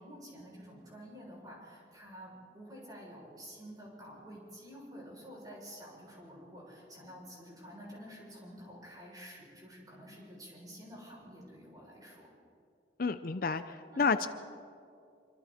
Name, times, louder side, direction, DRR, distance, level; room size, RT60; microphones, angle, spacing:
voice 1, 0.0-12.3 13.9-14.1, equal, 20° right, -4 dB, 6.9 m, -50 dB
voice 2, 13.0-14.3, left 4 dB, 50° left, 11 dB, 0.6 m, -30 dB
26.5 x 25.0 x 4.3 m, 2.4 s
head